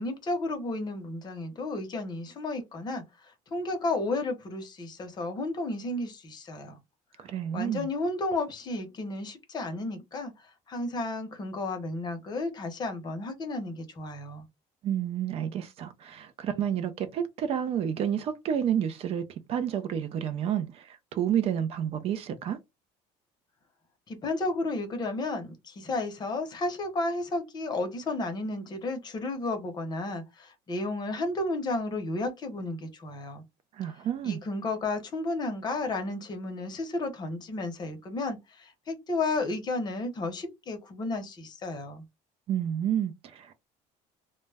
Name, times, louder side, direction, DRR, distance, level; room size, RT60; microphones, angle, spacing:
voice 1, 0.0-6.8 7.5-14.5 24.1-33.4 34.2-42.1, left 2 dB, 30° left, 0.7 m, -33 dB
voice 2, 7.2-7.9 14.8-19.2 19.5-22.6 33.7-34.4 42.5-43.5, right 9 dB, 50° right, 0.4 m, -30 dB
2.1 x 2.0 x 3.3 m
cardioid pair, 135°, 13 cm